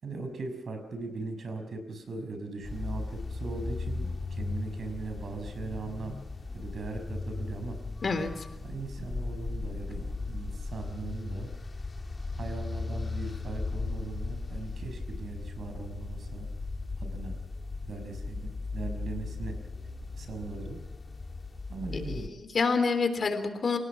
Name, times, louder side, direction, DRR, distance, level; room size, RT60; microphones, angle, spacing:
voice 1, 0.0-6.2 6.5-7.8 8.6-11.5 12.4-16.5 17.0-17.4 17.8-19.5 20.2-20.8 21.7-22.3, right 3 dB, 65° right, 7 dB, 5.8 m, -39 dB
sound 1, 2.6-22.3, left 3 dB, 35° left, 2.6 m, -37 dB
voice 2, 8.0-8.4 21.9-23.8, left 4 dB, 50° left, 8 dB, 3.5 m, -28 dB
29.0 x 17.5 x 6.2 m, 0.96 s
cardioid pair, 85°, 0 cm